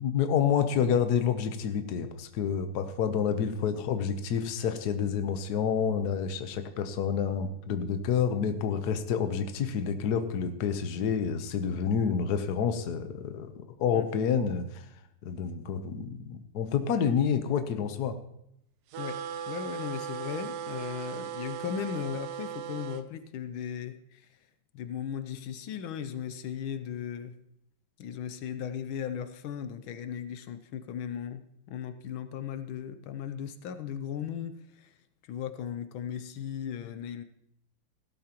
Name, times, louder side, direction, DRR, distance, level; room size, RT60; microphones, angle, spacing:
voice 1, 0.0-13.5 13.8-14.8 15.2-18.2, left 7 dB, 60° left, 8 dB, 1.3 m, -28 dB
sound 1, 18.9-23.0, right 8 dB, 70° right, 1.0 m, -37 dB
voice 2, 19.5-24.3 24.7-27.3 28.0-31.4 31.7-34.9 35.2-37.2, left 8 dB, 80° left, 10 dB, 1.5 m, -37 dB
15.5 x 12.5 x 3.0 m, 0.76 s
omnidirectional pair, 2.2 m